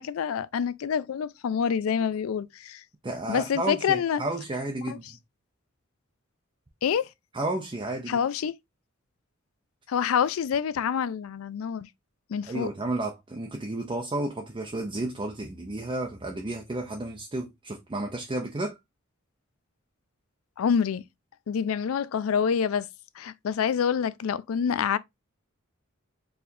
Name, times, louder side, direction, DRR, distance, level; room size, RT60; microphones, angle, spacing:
voice 1, 0.0-2.8 3.3-4.2 4.8-5.0 6.8-7.1 8.1-8.5 9.9-11.9 12.3-12.7 20.6-21.0 21.5-22.9 23.2-25.0, left 7 dB, 85° left, 0.4 m, -27 dB
voice 2, 3.0-5.0 7.3-8.2 12.5-18.8, right 2 dB, 25° right, 0.6 m, -32 dB
4.4 x 3.3 x 2.6 m
head